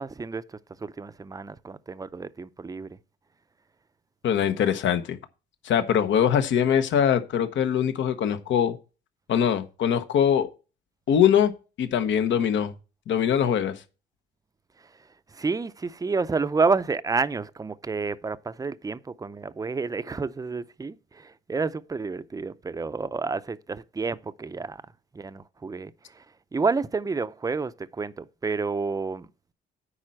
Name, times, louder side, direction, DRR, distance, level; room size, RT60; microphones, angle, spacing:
voice 1, 0.0-3.0 15.3-24.8 25.1-26.2 26.5-29.3, right 4 dB, 20° right, 0.5 m, -30 dB
voice 2, 4.2-5.2 5.6-8.8 9.3-10.5 11.1-11.5 11.8-12.7 13.1-13.7, left 8 dB, 70° left, 1.0 m, -22 dB
9.8 x 4.2 x 7.6 m
cardioid pair, 90°, 20 cm